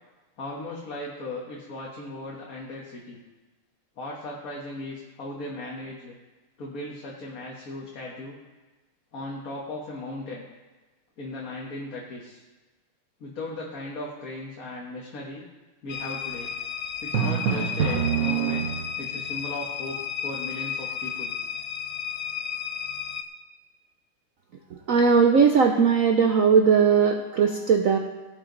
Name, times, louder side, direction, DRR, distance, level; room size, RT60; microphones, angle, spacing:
voice 1, 0.4-3.2 4.0-6.1 6.6-8.4 9.1-10.5 11.2-12.4 13.2-15.4 15.8-16.5 17.0-18.7 19.0-21.3, left 2 dB, 45° left, -3 dB, 1.7 m, -37 dB
sound 1, 15.9-23.2, left 8 dB, 65° left, 0.9 m, -33 dB
Drum, 17.1-19.2, right 8 dB, 55° right, 1.0 m, -26 dB
voice 2, 24.9-28.0, right 6 dB, 75° right, 4 dB, 0.7 m, -19 dB
17.0 x 8.8 x 4.0 m, 1.2 s
omnidirectional pair, 2.4 m